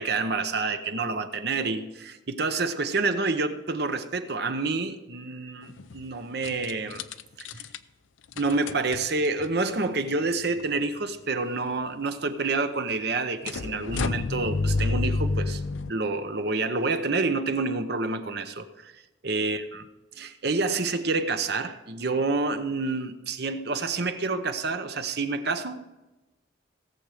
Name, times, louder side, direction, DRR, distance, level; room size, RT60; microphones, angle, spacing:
voice 1, 0.0-7.0 7.4-7.7 8.4-15.6 15.9-18.9 19.2-19.8 20.1-25.8, right 3 dB, 55° right, 0.8 m, -28 dB
sound 1, 5.6-6.0 6.4-7.8 8.3-9.5 10.3-10.4 10.6-10.7 13.5-15.9, left 3 dB, 85° left, 0.5 m, -29 dB
17.5 x 7.5 x 5.0 m
head